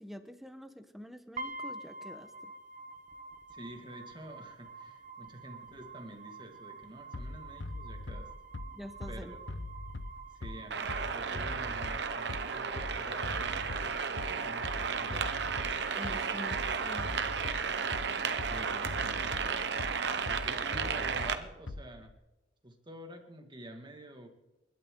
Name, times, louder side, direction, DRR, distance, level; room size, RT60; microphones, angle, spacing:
voice 1, 0.0-2.5 8.7-9.3 15.9-17.6, equal, ahead, 8 dB, 1.2 m, -46 dB
sound 1, 1.4-13.4, right 3 dB, 45° right, 1.1 m, -48 dB
voice 2, 3.5-8.3 9.1-9.4 10.3-15.5 18.5-19.8 20.2-22.1 22.6-24.3, right 1 dB, 25° right, 4 dB, 2.2 m, -49 dB
Bass drum, 7.1-22.1, left 2 dB, 85° left, 0.9 m, -42 dB
sound 2, 10.7-21.4, right 6 dB, 65° right, 1.1 m, -33 dB
29.0 x 12.0 x 3.9 m, 1.0 s
head